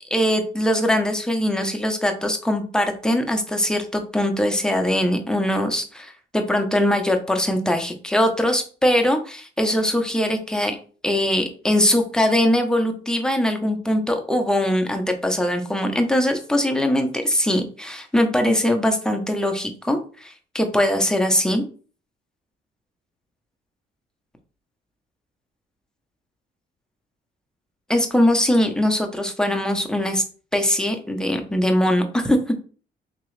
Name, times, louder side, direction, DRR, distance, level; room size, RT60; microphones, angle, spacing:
voice 1, 0.1-10.8 11.0-21.6 27.9-30.2 30.5-32.4, left 1 dB, 5° left, 4 dB, 0.8 m, -21 dB
3.7 x 3.0 x 3.2 m, 0.40 s
cardioid pair, 90°, 20 cm